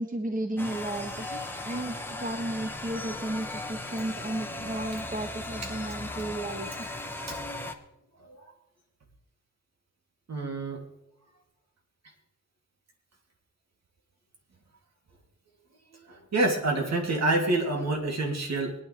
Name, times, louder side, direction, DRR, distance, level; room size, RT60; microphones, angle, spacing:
voice 1, 0.0-6.7, right 1 dB, 25° right, 4 dB, 1.2 m, -34 dB
sound 1, 0.6-7.7, left 2 dB, 5° left, 1.3 m, -37 dB
voice 2, 8.2-8.5 10.3-10.8 16.0-18.7, right 2 dB, 55° right, 1 dB, 3.1 m, -28 dB
24.0 x 9.7 x 3.5 m, 0.92 s
cardioid pair, 100°, 33 cm